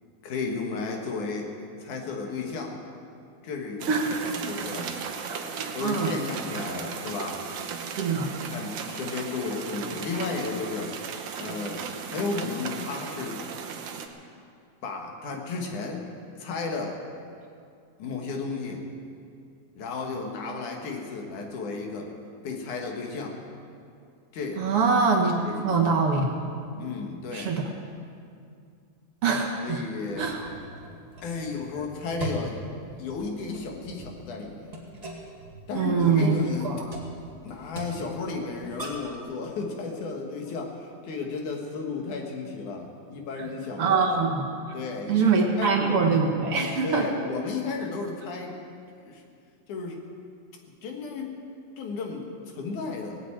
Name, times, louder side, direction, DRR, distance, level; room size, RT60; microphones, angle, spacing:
voice 1, 0.2-1.5 1.8-2.7 3.4-4.0 4.2-4.9 5.7-7.4 8.5-11.0 11.4-13.4 14.8-16.0 16.4-17.0 18.0-18.8 19.8-22.1 22.4-23.3 24.3-24.7 25.4-25.8 26.8-27.5 29.6-30.4 31.2-32.6 33.0-34.7 35.7-36.8 37.4-44.1 44.7-45.3 45.5-46.0 46.8-48.6 49.0-49.2 49.7-50.0 50.8-51.3 51.8-53.2, left 4 dB, 80° left, 1 dB, 3.2 m, -33 dB
sound 1, 3.8-14.1, right 6 dB, 75° right, 1.1 m, -36 dB
voice 2, 3.9-4.3 5.3-6.1 8.0-8.3 24.6-25.4 25.6-26.3 27.3-27.6 29.2-29.8 30.2-30.5 35.7-36.4 36.6-36.8 43.8-44.4 45.1-47.1, right 5 dB, 55° right, 0 dB, 2.1 m, -24 dB
sound 2, 30.1-39.2, equal, 15° right, 1.7 m, -41 dB
18.5 x 8.2 x 8.8 m, 2.4 s
omnidirectional pair, 3.4 m